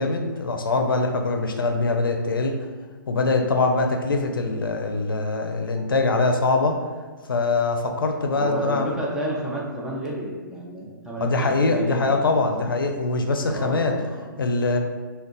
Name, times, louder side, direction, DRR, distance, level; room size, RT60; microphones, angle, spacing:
voice 1, 0.0-2.6 3.1-6.8 7.3-8.9 11.2-14.0 14.4-14.8, left 3 dB, 85° left, 4 dB, 0.4 m, -23 dB
voice 2, 8.4-12.7 13.5-14.3, right 1 dB, 5° right, -5 dB, 0.4 m, -31 dB
2.3 x 2.2 x 3.7 m, 1.5 s
hypercardioid pair, 135°, 11 cm